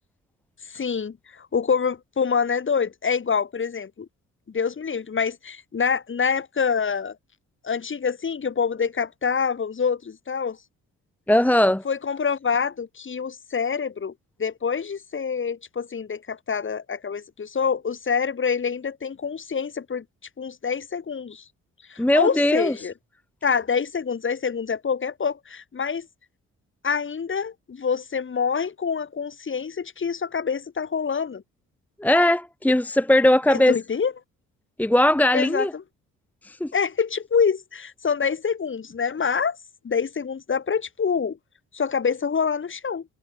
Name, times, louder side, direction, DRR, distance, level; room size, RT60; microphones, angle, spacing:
voice 1, 0.7-4.1 4.5-7.2 7.6-10.6 11.9-14.1 14.4-20.0 20.4-21.4 21.9-22.9 23.4-26.1 26.8-31.4 33.5-34.1 35.3-35.8 36.7-39.6 39.8-41.4 41.7-43.1, left 6 dB, 40° left, 7.0 m, -26 dB
voice 2, 11.3-11.8 22.0-22.7 32.0-33.7 34.8-35.7 36.4-36.7, left 1 dB, 5° left, 1.1 m, -19 dB
cardioid pair, 90°, 30 cm